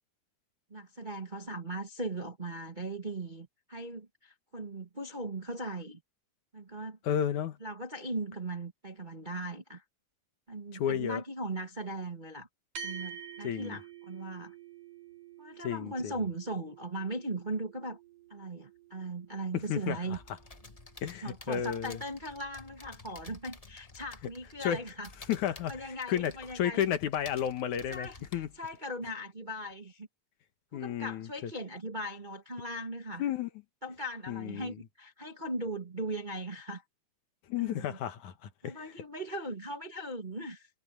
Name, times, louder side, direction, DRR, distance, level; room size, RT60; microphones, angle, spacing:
voice 1, 0.7-6.0 6.5-7.0 7.6-9.8 10.5-12.5 12.8-14.5 15.4-18.0 18.3-20.2 21.2-25.1 25.7-26.9 27.9-30.1 30.7-33.2 33.8-36.8 37.6-38.0 38.6-40.7, right 1 dB, 25° right, 1.2 m, -39 dB
voice 2, 7.0-7.6 10.7-11.2 13.4-13.8 15.6-16.1 19.5-20.2 21.0-22.0 24.6-24.8 25.3-25.7 26.1-28.5 30.7-31.5 33.2-33.5 34.3-34.8 37.5-38.8, left 10 dB, 75° left, 2.8 m, -32 dB
sound 1, 12.8-21.4, right 7 dB, 70° right, 7.4 m, -49 dB
sound 2, 20.1-28.8, left 3 dB, 30° left, 0.6 m, -52 dB
omnidirectional pair, 3.5 m